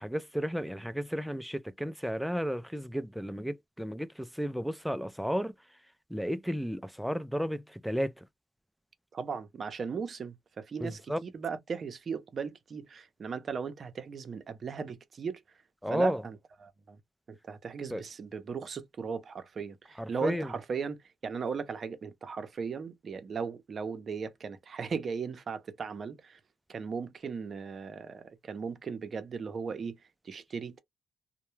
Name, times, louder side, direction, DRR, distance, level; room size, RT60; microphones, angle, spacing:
voice 1, 0.0-5.5 6.1-8.3 10.8-11.2 15.8-16.2 17.9-18.0 20.0-20.5, equal, ahead, 0.3 m, -33 dB
voice 2, 9.1-15.4 15.9-16.4 16.6-17.0 17.3-26.4 26.7-30.0 30.2-30.8, right 5 dB, 45° right, 0.6 m, -37 dB
2.2 x 2.1 x 3.0 m
cardioid pair, 90°, 0 cm